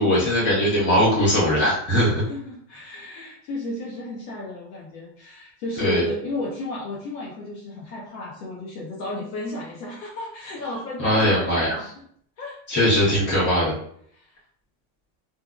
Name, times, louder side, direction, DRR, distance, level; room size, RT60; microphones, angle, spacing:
voice 1, 0.0-2.2 5.8-6.0 11.0-11.8 12.7-13.7, equal, 25° left, -7 dB, 1.3 m, -20 dB
voice 2, 2.3-12.0 12.4-12.6 14.1-14.4, left 1 dB, 60° left, -3 dB, 0.8 m, -33 dB
2.7 x 2.4 x 2.4 m, 0.64 s
supercardioid pair, 140°, 47 cm